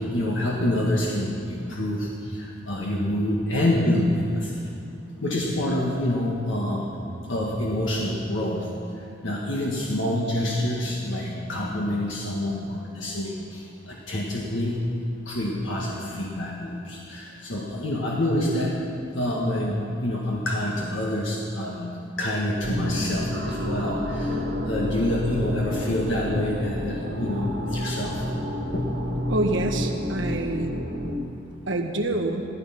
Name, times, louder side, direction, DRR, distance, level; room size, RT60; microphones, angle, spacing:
voice 1, 0.0-4.7 5.2-6.9 7.3-8.7 9.2-14.8 15.2-18.8 19.1-24.4 24.7-28.2 28.7-28.9, left 1 dB, 75° left, -3 dB, 1.8 m, -27 dB
sound 1, 22.6-31.2, left 1 dB, 85° right, 2.8 m, -29 dB
voice 2, 29.3-30.7 31.7-32.5, right 2 dB, 70° right, 3 dB, 1.4 m, -26 dB
15.5 x 13.5 x 5.9 m, 2.6 s
head